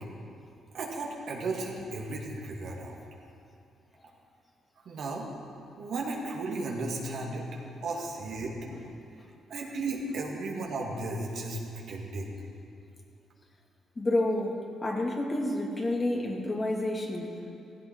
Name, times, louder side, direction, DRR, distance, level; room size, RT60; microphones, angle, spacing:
voice 1, 0.7-3.0 4.8-5.3 5.8-8.5 9.5-11.6 11.9-12.3, right 2 dB, 65° right, -2 dB, 2.6 m, -34 dB
voice 2, 14.0-17.3, left 1 dB, 30° left, 0 dB, 2.6 m, -30 dB
15.5 x 15.5 x 4.8 m, 2.6 s
supercardioid pair, 55°, 0 cm